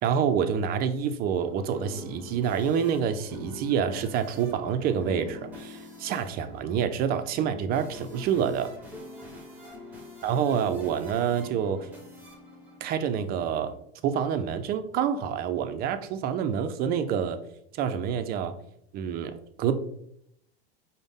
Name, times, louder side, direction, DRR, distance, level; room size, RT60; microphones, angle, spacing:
voice 1, 0.0-8.7 10.2-11.9 12.8-13.7 14.0-17.4 17.7-18.6 18.9-19.7, right 8 dB, 35° right, 10 dB, 0.4 m, -27 dB
sound 1, 1.3-13.7, left 1 dB, 5° right, 1.1 m, -45 dB
5.0 x 2.1 x 3.5 m, 0.73 s
hypercardioid pair, 105°, 29 cm